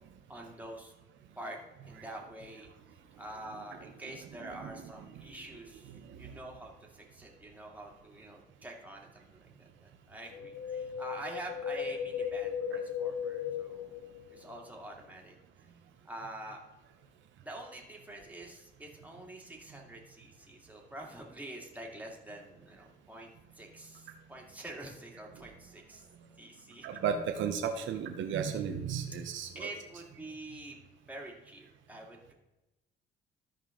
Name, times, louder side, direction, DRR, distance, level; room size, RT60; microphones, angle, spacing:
voice 1, 0.3-0.9 1.4-1.6 1.8-2.7 3.2-14.0 14.3-15.4 16.0-16.6 17.4-23.3 23.6-26.1 26.4-26.9 29.5-30.8 31.1-32.3, right 1 dB, 10° right, -1 dB, 2.1 m, -46 dB
voice 2, 4.4-4.8 6.1-6.2 26.8-29.7, right 7 dB, 75° right, 5 dB, 0.8 m, -34 dB
Wind, 10.3-14.7 14.9-15.0, left 7 dB, 80° left, 0.6 m, -36 dB
13.5 x 5.2 x 3.7 m, 1.0 s
cardioid pair, 90°, 20 cm